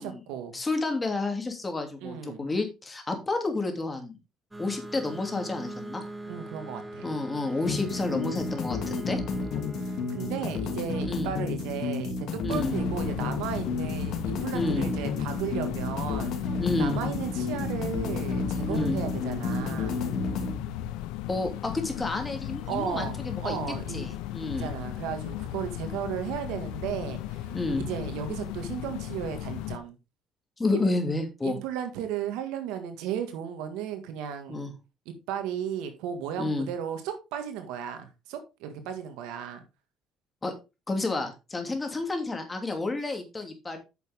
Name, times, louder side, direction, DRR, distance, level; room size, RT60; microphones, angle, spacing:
voice 1, 0.0-0.6 2.0-2.5 6.3-7.1 9.3-9.5 9.8-16.3 16.8-20.0 22.7-24.1 24.6-27.5 27.8-30.0 30.7-30.9 31.4-34.7 35.1-39.6, right 8 dB, 90° right, 1.8 m, -35 dB
voice 2, 0.5-4.2 4.6-6.0 7.0-9.2 11.0-11.3 12.4-12.7 14.5-14.9 16.6-17.0 18.7-19.0 21.3-23.6 23.9-24.7 27.5-27.9 30.6-31.6 34.5-34.7 36.4-36.7 40.4-40.5 40.9-43.8, left 3 dB, 20° left, 2.7 m, -30 dB
sound 1, 4.5-11.9, right 1 dB, 10° right, 1.5 m, -42 dB
sound 2, 7.7-20.6, left 4 dB, 65° left, 2.6 m, -31 dB
sound 3, 12.5-29.8, left 12 dB, 90° left, 0.8 m, -36 dB
9.1 x 6.8 x 3.6 m
cardioid pair, 90°, 0 cm